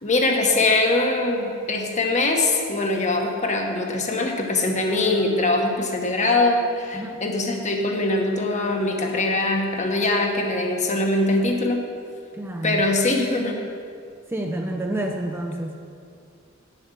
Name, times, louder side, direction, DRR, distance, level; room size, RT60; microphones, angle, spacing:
voice 1, 0.0-11.8 12.6-13.6, left 2 dB, 35° left, 2 dB, 1.3 m, -22 dB
voice 2, 6.9-7.2 12.3-12.9 14.3-15.8, right 1 dB, 10° right, 2 dB, 0.6 m, -29 dB
9.6 x 7.4 x 6.7 m, 2.3 s
head